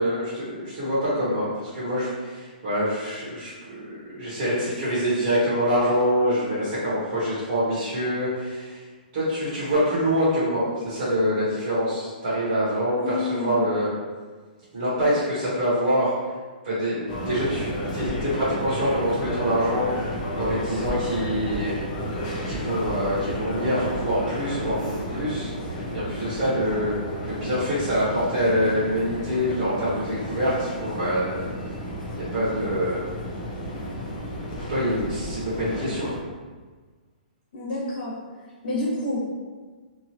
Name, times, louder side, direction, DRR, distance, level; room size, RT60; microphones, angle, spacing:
voice 1, 0.0-8.8 9.1-13.9 14.7-16.1 16.6-21.7 22.4-26.9 27.3-31.4 32.1-33.0 34.5-36.1, equal, 35° right, -11 dB, 1.0 m, -25 dB
voice 2, 13.0-13.7 37.5-38.1 38.6-39.2, left 2 dB, 75° left, -7 dB, 1.1 m, -28 dB
sound 1, 17.1-36.2, equal, 20° left, 0.4 m, -32 dB
2.8 x 2.4 x 2.8 m, 1.4 s
hypercardioid pair, 180°, 5 cm